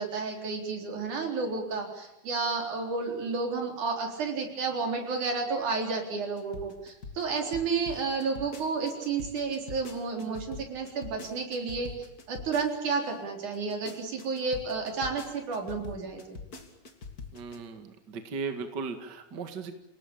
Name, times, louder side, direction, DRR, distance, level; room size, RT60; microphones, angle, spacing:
voice 1, 0.0-11.9 12.3-16.4, right 4 dB, 70° right, 3 dB, 5.4 m, -31 dB
sound 1, 6.4-13.1 13.5-17.6, left 4 dB, 30° left, 2.4 m, -43 dB
voice 2, 17.3-19.8, right 5 dB, 40° right, 7 dB, 2.2 m, -37 dB
27.5 x 18.5 x 8.8 m, 0.86 s
omnidirectional pair, 3.6 m